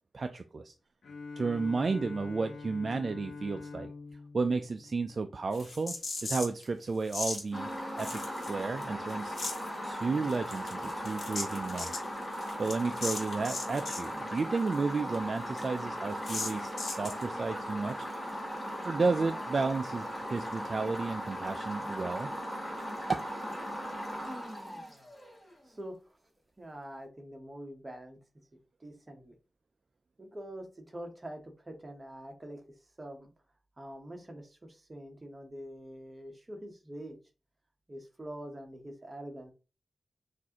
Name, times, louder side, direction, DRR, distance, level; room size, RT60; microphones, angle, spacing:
voice 1, 0.1-0.7 1.4-3.9 4.3-6.0 6.2-7.7 8.0-9.4 9.8-11.9 12.6-18.0 18.8-22.3 23.1-23.2, right 4 dB, 45° right, 7 dB, 0.3 m, -32 dB
Bowed string instrument, 1.0-5.7, left 4 dB, 80° left, 0.9 m, -45 dB
sound 1, 5.5-6.6 7.1-7.4 8.0-8.8 9.1-9.7 10.3-14.1 14.4-14.5 14.7-14.8 15.1-15.2 15.6-15.7 16.2-17.2, left 3 dB, 55° left, 1.1 m, -38 dB
sound 2, 7.5-25.5, equal, 5° left, 1.2 m, -38 dB
voice 2, 25.6-26.2 26.6-28.2 28.8-29.3 30.2-32.6 33.0-33.3 33.8-37.2 37.9-39.5, right 1 dB, 25° right, 3 dB, 0.9 m, -45 dB
6.2 x 2.5 x 2.8 m, 0.32 s
wide cardioid pair, 155°, 0 cm